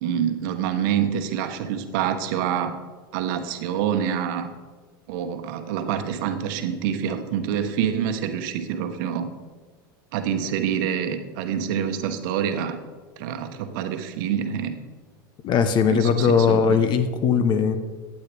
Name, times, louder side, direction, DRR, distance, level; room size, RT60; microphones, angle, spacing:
voice 1, 0.0-2.8 3.1-4.5 5.1-9.3 10.1-12.8 13.2-14.7 15.9-16.8, right 8 dB, 65° right, 8 dB, 1.0 m, -26 dB
voice 2, 15.4-17.8, left 6 dB, 40° left, 11 dB, 0.9 m, -19 dB
12.0 x 8.6 x 3.4 m, 1.4 s
hypercardioid pair, 100°, 12 cm